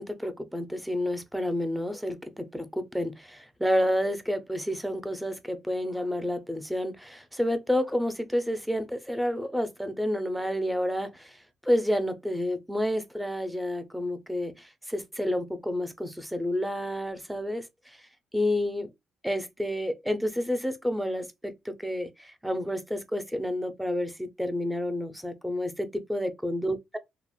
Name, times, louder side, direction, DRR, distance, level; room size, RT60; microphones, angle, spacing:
voice 1, 0.0-18.1 18.3-18.9 19.2-27.0, left 1 dB, 5° right, 0.6 m, -30 dB
3.2 x 2.0 x 2.3 m
cardioid pair, 90°, 0 cm